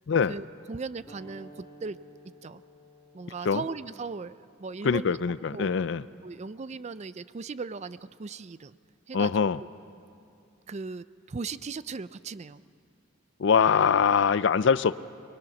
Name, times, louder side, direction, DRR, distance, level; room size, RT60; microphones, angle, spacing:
voice 1, 0.3-2.0 2.4-2.6 3.1-5.2 5.5-5.7 6.2-8.8 9.1-9.4 10.7-12.6, right 4 dB, 35° right, 15 dB, 0.4 m, -38 dB
sound 1, 1.1-6.2, right 1 dB, 10° left, 2.4 m, -54 dB
voice 2, 4.8-6.0 9.1-9.6 13.4-15.0, left 6 dB, 60° left, 17 dB, 0.4 m, -23 dB
23.5 x 22.0 x 5.9 m, 2.6 s
head